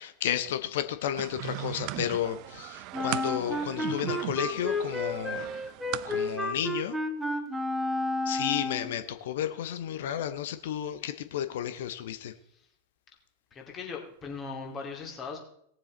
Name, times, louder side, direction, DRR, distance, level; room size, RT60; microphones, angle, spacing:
voice 1, 0.0-5.5 6.0-7.0 8.3-12.3, left 10 dB, 55° left, 11 dB, 0.8 m, -32 dB
sound 1, 1.2-6.4, right 18 dB, 40° right, 0.3 m, -38 dB
Wind instrument woodwind instrument, 2.9-9.0, left 1 dB, 5° right, 1.3 m, -31 dB
voice 2, 13.5-15.4, left 5 dB, 25° left, 1 dB, 2.6 m, -39 dB
18.0 x 7.2 x 4.0 m, 0.70 s
figure-of-eight pair, 90°, 0 cm